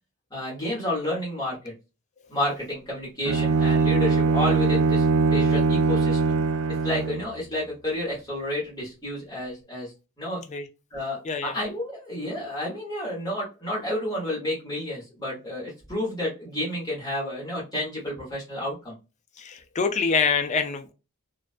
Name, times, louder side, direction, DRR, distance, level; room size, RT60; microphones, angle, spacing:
voice 1, 0.3-1.7 2.3-6.4 6.8-10.4 10.9-19.0, left 1 dB, 20° left, 1.1 m, -30 dB
Bowed string instrument, 3.2-7.3, right 4 dB, 65° right, 0.4 m, -22 dB
voice 2, 19.4-20.9, left 5 dB, 35° left, 0.4 m, -25 dB
2.3 x 2.2 x 2.4 m
head